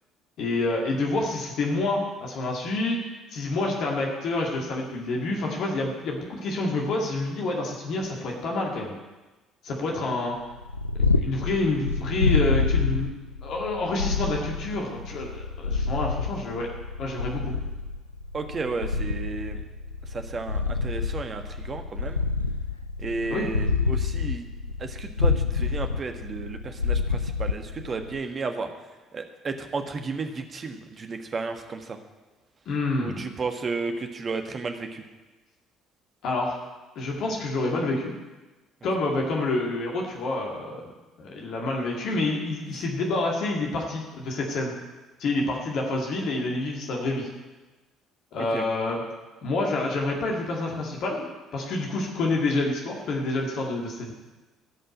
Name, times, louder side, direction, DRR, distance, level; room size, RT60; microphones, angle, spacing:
voice 1, 0.4-3.0 3.3-8.9 9.6-10.4 11.1-13.1 13.4-16.7 17.0-17.5 23.3-23.5 32.7-33.2 36.2-36.6 37.0-38.1 38.8-40.9 41.2-44.7 45.2-47.3 48.3-49.0 49.4-51.3 51.5-54.1, left 2 dB, 55° left, -1 dB, 2.1 m, -28 dB
Purr, 10.5-28.2, left 4 dB, 90° left, 0.4 m, -27 dB
voice 2, 18.3-19.6 20.0-22.2 23.0-24.5 24.8-28.7 29.1-32.0 33.0-35.0 42.7-42.8 48.4-48.7, right 4 dB, 35° right, 6 dB, 1.5 m, -33 dB
15.5 x 5.5 x 8.9 m, 1.2 s
figure-of-eight pair, 50°, 0 cm